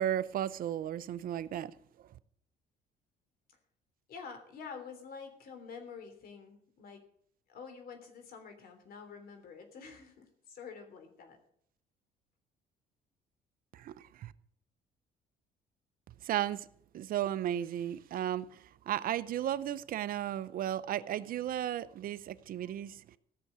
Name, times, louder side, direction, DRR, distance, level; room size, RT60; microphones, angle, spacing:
voice 1, 0.0-1.7 13.7-14.3 16.2-16.7 16.9-23.2, right 11 dB, 60° right, 0.7 m, -34 dB
voice 2, 4.1-7.0 7.5-11.4, left 5 dB, 60° left, 3.2 m, -48 dB
15.5 x 6.8 x 8.6 m
cardioid pair, 110°, 17 cm